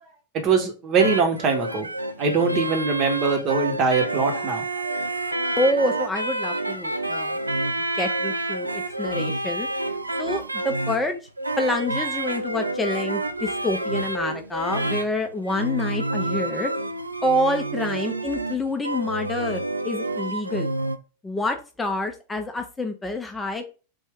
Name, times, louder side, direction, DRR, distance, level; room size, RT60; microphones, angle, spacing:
voice 1, 0.3-1.9 2.2-4.6, right 5 dB, 35° right, 4 dB, 1.0 m, -22 dB
sound 1, 1.0-21.0, right 2 dB, 85° right, 0.4 m, -28 dB
voice 2, 5.6-7.4 7.9-9.7 10.2-11.2 11.6-16.7 17.2-20.7 21.2-23.6, left 1 dB, 10° left, 5 dB, 0.5 m, -27 dB
3.4 x 2.6 x 3.5 m, 0.34 s
figure-of-eight pair, 90°, 0 cm